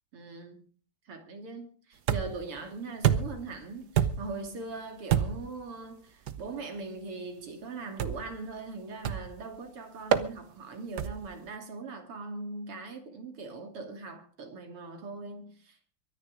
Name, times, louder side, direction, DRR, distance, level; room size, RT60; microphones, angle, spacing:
voice 1, 0.1-0.7 1.1-15.8, right 3 dB, 90° right, 3.6 m, -41 dB
sound 1, 2.1-2.5 3.0-3.5 4.0-4.4 5.1-5.5 6.3-6.5 8.0-8.4 9.1-9.4 10.1-10.3 11.0-11.3, right 9 dB, 55° right, 1.4 m, -28 dB
23.0 x 10.5 x 5.2 m
omnidirectional pair, 2.4 m